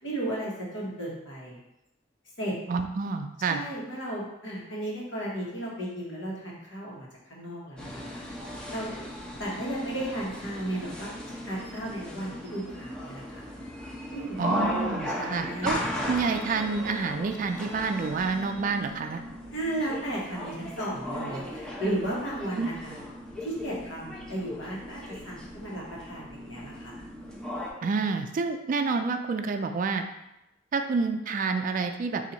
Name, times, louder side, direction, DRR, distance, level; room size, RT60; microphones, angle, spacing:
voice 1, 0.0-1.6 2.4-2.5 3.5-8.3 8.7-9.1 9.4-11.1 11.4-13.5 14.1-14.4 15.1-15.7 19.5-23.0 23.4-27.0, right 1 dB, 75° left, -4 dB, 1.3 m, -34 dB
voice 2, 2.7-3.6 14.4-19.2 22.6-22.7 27.8-30.0 30.7-32.2, right 4 dB, 45° right, 6 dB, 0.3 m, -28 dB
sound 1, 7.8-27.7, left 1 dB, 5° left, 0.6 m, -37 dB
4.0 x 2.7 x 4.3 m, 0.89 s
head